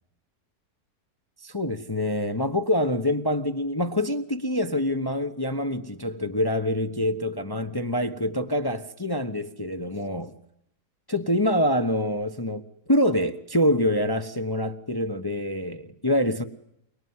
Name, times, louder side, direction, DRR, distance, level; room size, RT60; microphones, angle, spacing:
voice 1, 1.4-10.3 11.1-12.6 12.9-16.4, left 1 dB, 15° left, 8 dB, 0.9 m, -25 dB
28.5 x 19.5 x 9.6 m, 0.79 s
omnidirectional pair, 1.7 m